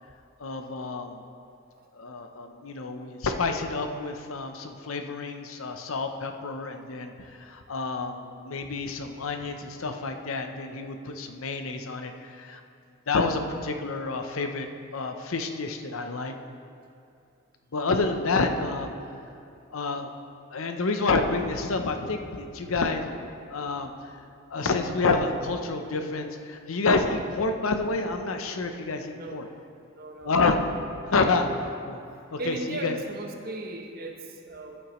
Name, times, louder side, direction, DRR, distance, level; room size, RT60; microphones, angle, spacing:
voice 1, 0.4-1.2 2.0-7.1 7.5-12.1 12.4-12.6 13.1-14.7 14.9-16.3 17.7-18.9 19.7-20.1 20.5-23.1 23.5-23.9 24.5-29.5 30.2-30.6 31.1-31.5 31.9-32.0 32.3-33.0, left 3 dB, 85° left, 6 dB, 0.7 m, -28 dB
voice 2, 29.9-30.5 31.5-31.6 32.4-34.8, right 2 dB, 45° right, 3 dB, 0.9 m, -37 dB
13.5 x 7.8 x 3.1 m, 2.5 s
head